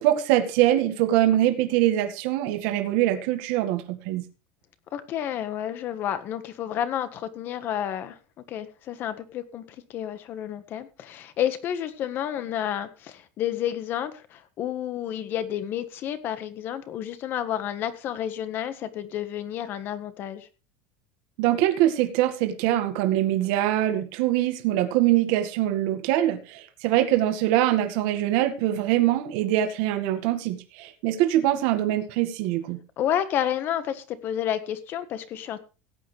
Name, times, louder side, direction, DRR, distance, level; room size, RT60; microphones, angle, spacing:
voice 1, 0.0-4.3 21.4-32.8, right 13 dB, 70° right, 6 dB, 1.9 m, -23 dB
voice 2, 4.9-8.2 8.5-20.5 33.0-35.6, left 10 dB, 40° left, 11 dB, 1.6 m, -30 dB
17.0 x 8.9 x 3.5 m, 0.32 s
supercardioid pair, 145°, 5 cm